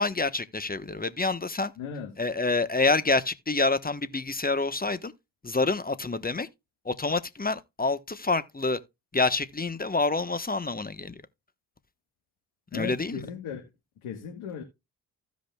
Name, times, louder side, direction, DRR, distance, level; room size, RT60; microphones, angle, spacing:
voice 1, 0.0-1.7 2.2-5.1 5.4-6.5 6.8-8.8 9.1-11.2 12.7-13.2, left 3 dB, 20° left, 1.1 m, -27 dB
voice 2, 1.8-2.1 12.7-13.6 14.0-14.6, left 7 dB, 80° left, 1.7 m, -36 dB
15.5 x 5.2 x 2.3 m
hypercardioid pair, 40°, 49 cm